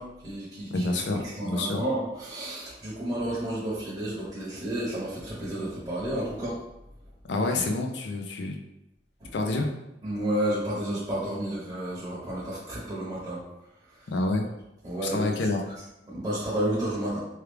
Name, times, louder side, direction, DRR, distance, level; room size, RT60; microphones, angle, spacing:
voice 1, 0.0-6.6 9.2-9.3 10.0-13.4 14.8-15.3 16.1-17.2, right 1 dB, 25° right, -8 dB, 0.8 m, -31 dB
voice 2, 0.7-1.8 7.3-8.6 9.3-9.7 14.1-14.5 15.0-15.6, left 2 dB, 80° left, 3 dB, 0.5 m, -28 dB
3.1 x 2.3 x 3.3 m, 0.90 s
head